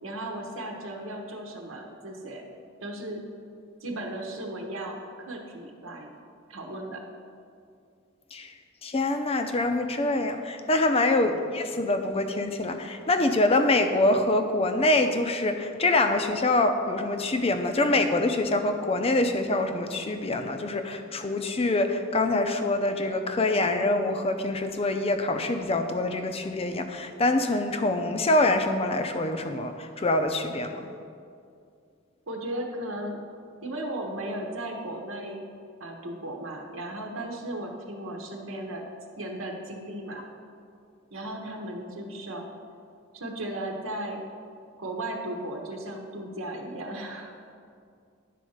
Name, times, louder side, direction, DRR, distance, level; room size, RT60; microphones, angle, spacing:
voice 1, 0.0-2.4 2.8-3.2 3.8-6.1 6.5-7.0 11.2-11.5 32.3-33.2 33.6-35.5 35.8-38.9 39.2-40.3 41.1-42.5 43.1-44.2 44.8-47.3, right 1 dB, 85° right, 1 dB, 1.1 m, -36 dB
voice 2, 8.8-30.9, left 2 dB, 30° left, 7 dB, 0.5 m, -25 dB
10.0 x 4.2 x 6.4 m, 2.3 s
head